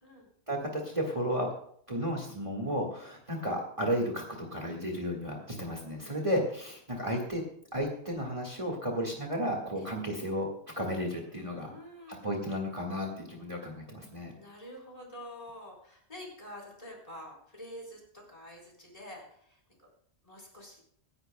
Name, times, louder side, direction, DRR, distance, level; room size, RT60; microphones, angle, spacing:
voice 1, 0.5-1.5 1.9-7.4 7.7-10.5 10.8-11.7 12.2-14.3, equal, 30° right, 0 dB, 1.8 m, -33 dB
voice 2, 11.3-12.3 14.3-19.9 20.2-20.8, left 1 dB, 35° left, -1 dB, 4.0 m, -47 dB
25.0 x 10.5 x 2.2 m, 0.63 s
omnidirectional pair, 1.1 m